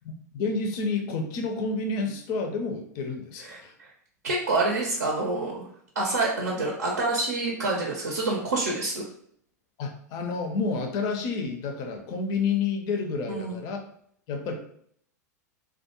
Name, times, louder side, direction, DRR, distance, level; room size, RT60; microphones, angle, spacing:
voice 1, 0.0-3.7 9.8-13.8 14.3-14.5, left 4 dB, 40° left, 4 dB, 0.4 m, -29 dB
voice 2, 3.4-3.9 4.2-5.7 6.0-9.0 13.3-13.6, right 2 dB, 75° right, -1 dB, 0.5 m, -27 dB
2.3 x 2.1 x 2.8 m, 0.64 s
figure-of-eight pair, 90°, 9 cm